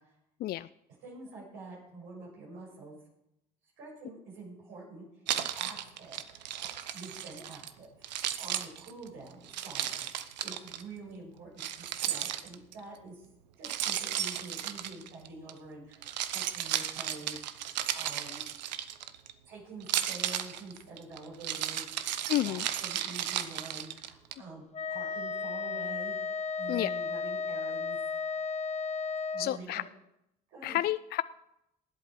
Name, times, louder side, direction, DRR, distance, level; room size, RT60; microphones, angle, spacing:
voice 1, 1.0-3.0 3.8-5.1 5.5-6.2 6.9-13.2 13.6-18.4 19.5-21.9 22.4-26.2 26.6-28.0 29.3-29.8 30.5-30.8, right 3 dB, 70° right, -4 dB, 5.9 m, -47 dB
Keys jangling, 5.3-7.7 8.0-10.8 11.6-12.8 13.6-15.5 15.9-19.3 19.8-24.3, right 11 dB, 90° right, 0.7 m, -34 dB
voice 2, 22.3-22.7 26.7-26.9 29.4-29.8 30.6-31.2, left 14 dB, 50° left, 16 dB, 0.4 m, -30 dB
Wind instrument woodwind instrument, 24.7-29.6, left 5 dB, 30° left, 1.6 m, -34 dB
19.0 x 8.1 x 4.6 m, 0.82 s
hypercardioid pair, 60°, 21 cm